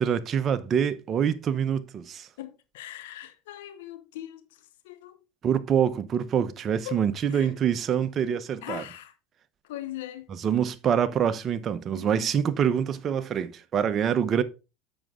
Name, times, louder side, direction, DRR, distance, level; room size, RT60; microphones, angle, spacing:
voice 1, 0.0-2.3 5.4-8.8 10.4-14.4, right 8 dB, 40° right, 0.8 m, -25 dB
voice 2, 2.4-5.2 6.8-7.6 8.6-9.2 9.6-10.3 12.0-12.4, left 14 dB, 80° left, 0.7 m, -41 dB
7.4 x 6.2 x 3.7 m
hypercardioid pair, 90°, 0 cm